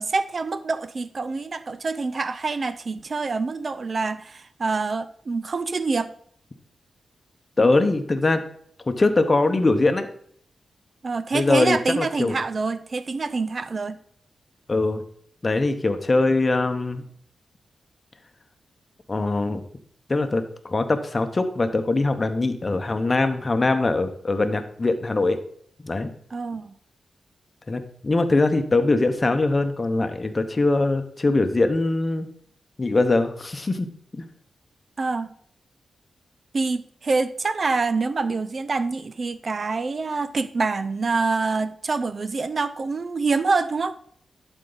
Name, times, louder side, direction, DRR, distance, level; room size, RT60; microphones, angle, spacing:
voice 1, 0.0-6.1 11.0-14.0 26.3-26.7 35.0-35.3 36.5-44.0, right 4 dB, 50° right, 13 dB, 0.4 m, -26 dB
voice 2, 7.6-8.4 8.9-10.1 11.3-12.3 14.7-15.0 15.4-17.0 19.1-19.6 20.1-25.4 25.8-26.1 27.7-32.3 32.8-33.9 34.1-34.3, left 2 dB, 35° left, 9 dB, 0.8 m, -22 dB
11.5 x 4.5 x 3.9 m, 0.64 s
cardioid pair, 80°, 0 cm